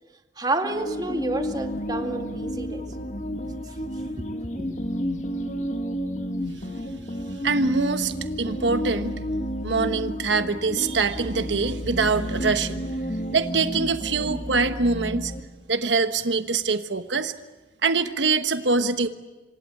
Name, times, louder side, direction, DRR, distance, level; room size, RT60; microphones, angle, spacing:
voice 1, 0.4-2.8 4.1-4.8, right 2 dB, 20° right, 5 dB, 2.1 m, -30 dB
sound 1, 0.6-15.4, equal, 40° left, 1.9 m, -31 dB
voice 2, 7.4-9.2 9.6-12.9 13.3-15.3 15.7-17.3 17.8-19.1, right 4 dB, 85° right, 10 dB, 1.2 m, -24 dB
27.0 x 25.5 x 8.3 m, 1.2 s
head